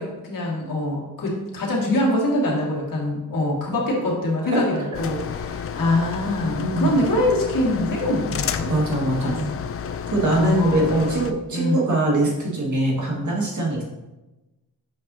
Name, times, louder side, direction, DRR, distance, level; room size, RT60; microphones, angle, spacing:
voice 1, 0.0-8.7 9.2-9.4 10.3-11.8, left 1 dB, 55° left, -3 dB, 2.1 m, -24 dB
sound 1, 4.9-11.3, left 7 dB, 40° left, 0.4 m, -31 dB
voice 2, 6.6-7.0 8.7-9.5 10.1-13.8, right 2 dB, 50° right, -3 dB, 1.9 m, -22 dB
7.2 x 5.4 x 2.7 m, 1.0 s
cardioid pair, 90°, 38 cm